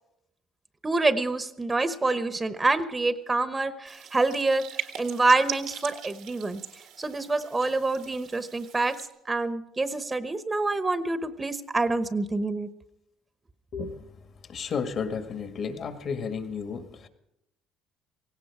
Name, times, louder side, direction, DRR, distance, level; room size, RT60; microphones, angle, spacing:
voice 1, 0.8-6.6 7.0-9.0 9.3-12.7, right 3 dB, 20° right, 12 dB, 1.0 m, -26 dB
sound 1, 3.9-9.1, right 11 dB, 80° right, 1.7 m, -41 dB
voice 2, 13.7-17.1, left 5 dB, 55° left, 7 dB, 1.9 m, -33 dB
17.5 x 17.0 x 4.9 m, 0.85 s
supercardioid pair, 85°, 0 cm